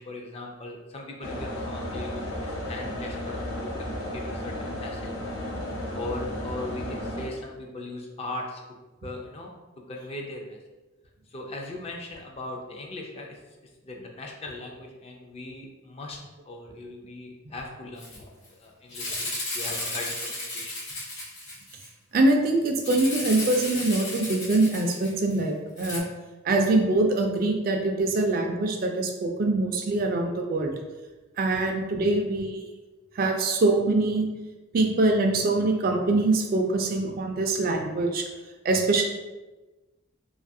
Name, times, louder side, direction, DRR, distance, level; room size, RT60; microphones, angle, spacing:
voice 1, 0.0-5.1 5.9-8.6 9.0-9.5 9.9-10.6 11.3-13.4 13.8-16.2 16.5-18.3 18.6-19.3 19.5-20.7 31.5-31.6, left 2 dB, 30° left, 0 dB, 0.3 m, -39 dB
sound 1, 1.2-7.3, left 1 dB, 85° left, 0.6 m, -33 dB
Rattle (instrument), 18.0-18.2 18.4-18.5 18.9-21.9 22.8-25.4 25.8-26.0, left 2 dB, 60° left, 0.9 m, -34 dB
voice 2, 22.1-26.1 26.4-30.7 31.4-32.7 33.2-34.3 34.7-38.2 38.6-39.0, right 2 dB, 45° right, 3 dB, 0.3 m, -24 dB
2.6 x 2.4 x 2.6 m, 1.2 s
head